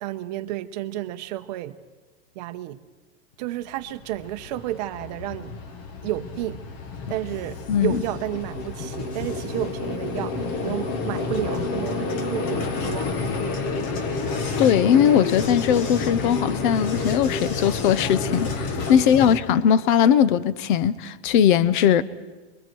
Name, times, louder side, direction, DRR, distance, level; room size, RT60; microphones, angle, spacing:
voice 1, 0.0-1.8 2.3-2.8 3.4-5.5 6.0-6.6 7.1-13.6 18.9-19.3 19.7-20.0, right 14 dB, 40° right, 0.9 m, -32 dB
Vehicle, 3.8-19.4, left 3 dB, 30° left, 1.1 m, -29 dB
voice 2, 7.7-8.0 14.6-22.0, left 9 dB, 50° left, 0.8 m, -19 dB
27.5 x 22.5 x 4.6 m
supercardioid pair, 180°, 33 cm